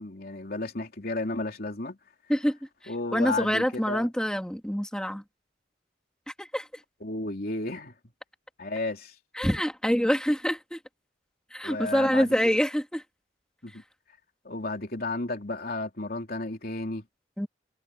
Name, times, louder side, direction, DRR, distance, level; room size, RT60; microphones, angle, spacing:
voice 1, 0.0-2.0 2.9-4.1 7.0-7.9 8.6-9.1 11.6-12.6 13.6-13.8 14.4-17.0, left 2 dB, 55° left, 3.2 m, -33 dB
voice 2, 3.1-5.2 6.4-6.7 9.3-10.8 11.5-13.0 17.4-17.5, equal, 5° left, 2.8 m, -26 dB
head